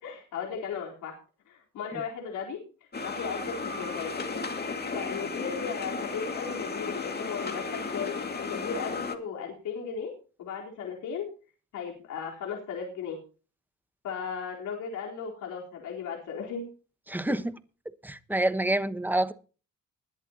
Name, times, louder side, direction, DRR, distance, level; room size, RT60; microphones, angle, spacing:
voice 1, 0.0-1.1 1.5-4.2 4.9-10.1 10.4-11.2 11.7-13.2 14.0-16.7 17.3-17.4, left 6 dB, 85° left, -1 dB, 4.1 m, -36 dB
sound 1, 2.9-9.2, left 4 dB, 35° left, 2.4 m, -34 dB
voice 2, 17.1-17.6 18.0-19.3, right 1 dB, 5° right, 12 dB, 1.2 m, -27 dB
21.0 x 11.0 x 2.9 m, 0.37 s
cardioid pair, 90°, 30 cm